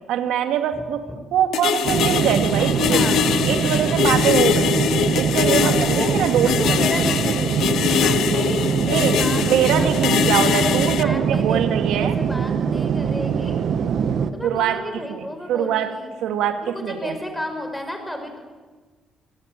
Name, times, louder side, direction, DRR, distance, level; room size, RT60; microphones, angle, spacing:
voice 1, 0.1-3.1 3.5-4.7 5.1-7.0 8.9-9.2 9.4-12.2 14.4-15.9 16.2-17.2, right 9 dB, 90° right, 7 dB, 2.3 m, -23 dB
sound 1, 1.5-11.0, left 10 dB, 75° left, 0.9 m, -22 dB
sound 2, 1.8-14.3, right 7 dB, 65° right, 1.5 m, -23 dB
voice 2, 2.6-3.2 4.6-4.7 5.6-6.2 6.4-7.6 7.9-9.9 10.3-13.6 14.3-16.1 16.6-18.4, left 1 dB, 5° left, 5 dB, 5.9 m, -33 dB
26.0 x 17.5 x 9.1 m, 1.3 s
cardioid pair, 90°, 0 cm